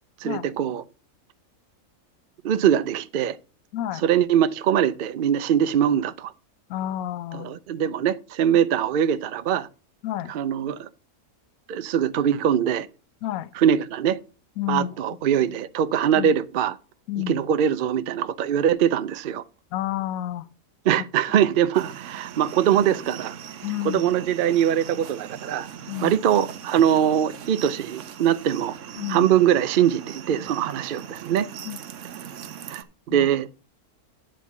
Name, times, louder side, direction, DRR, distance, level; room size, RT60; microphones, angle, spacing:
voice 1, 0.2-0.8 2.4-3.4 4.0-6.3 7.3-9.7 10.3-10.9 11.7-12.9 13.6-14.2 14.7-16.8 17.3-19.4 20.9-23.4 23.8-25.7 26.0-28.7 29.1-31.5 32.7-33.5, right 9 dB, 80° right, 0.4 m, -22 dB
voice 2, 3.7-4.0 6.7-7.5 10.0-10.3 13.2-13.5 14.6-14.9 16.1-16.3 17.1-17.4 19.7-20.5 23.6-24.0 25.9-26.2 29.0-29.3 31.6-31.8 33.1-33.3, left 12 dB, 70° left, 1.0 m, -30 dB
sound 1, 21.7-32.8, right 8 dB, 60° right, 0.9 m, -40 dB
10.0 x 3.7 x 7.2 m
omnidirectional pair, 1.6 m